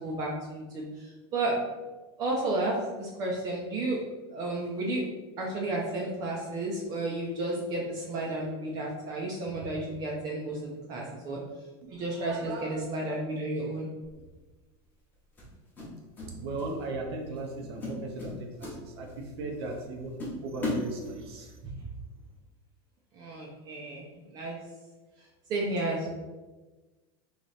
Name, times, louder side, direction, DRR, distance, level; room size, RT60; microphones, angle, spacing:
voice 1, 0.0-1.8 2.2-4.0 4.3-5.1 5.4-11.4 11.9-13.9 21.6-21.7 23.1-24.6 25.5-26.1, right 2 dB, 30° right, -3 dB, 0.5 m, -32 dB
voice 2, 11.8-12.8 16.3-21.6, right 2 dB, 80° right, 2 dB, 0.6 m, -37 dB
Running On Wood, 14.0-14.3 15.4-16.3 16.6-16.9 17.4-17.5 17.8-19.3 19.7-19.8 20.2-21.5, left 2 dB, 15° left, 0.9 m, -36 dB
3.2 x 2.9 x 4.0 m, 1.2 s
supercardioid pair, 175°, 13 cm